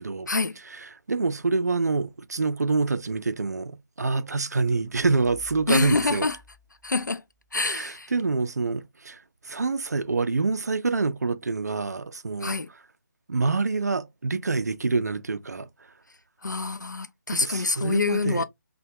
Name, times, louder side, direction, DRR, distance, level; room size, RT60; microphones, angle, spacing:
voice 1, 0.0-0.3 0.6-6.3 7.6-12.6 13.3-15.7 17.3-18.4, right 3 dB, 60° right, 0.4 m, -26 dB
sound 1, 5.2-7.6, left 2 dB, 15° left, 0.4 m, -53 dB
voice 2, 5.7-6.3 6.8-7.2 7.5-8.1 12.4-12.7 16.4-18.4, left 3 dB, 75° left, 0.5 m, -26 dB
3.3 x 2.2 x 2.8 m
figure-of-eight pair, 155°, 10 cm